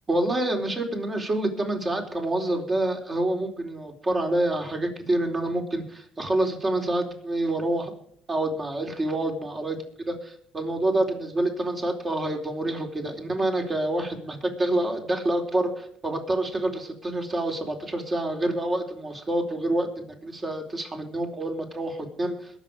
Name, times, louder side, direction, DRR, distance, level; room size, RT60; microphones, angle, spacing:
voice 1, 0.1-7.9 8.3-19.9 20.2-22.6, right 1 dB, 30° right, 3 dB, 4.1 m, -27 dB
22.0 x 7.4 x 5.1 m, 0.65 s
supercardioid pair, 80°, 0 cm